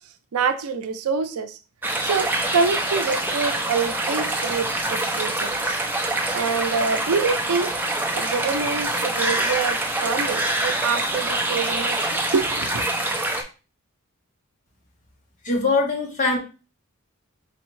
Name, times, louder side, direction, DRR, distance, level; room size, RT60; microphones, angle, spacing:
voice 1, 0.3-1.6 2.0-5.8 6.3-7.7 8.2-12.8, right 5 dB, 90° right, 0.5 m, -26 dB
sound 1, 1.8-13.4, right 2 dB, 10° right, 0.4 m, -25 dB
voice 2, 15.4-16.4, left 3 dB, 35° left, 1.1 m, -22 dB
4.1 x 3.5 x 3.1 m
head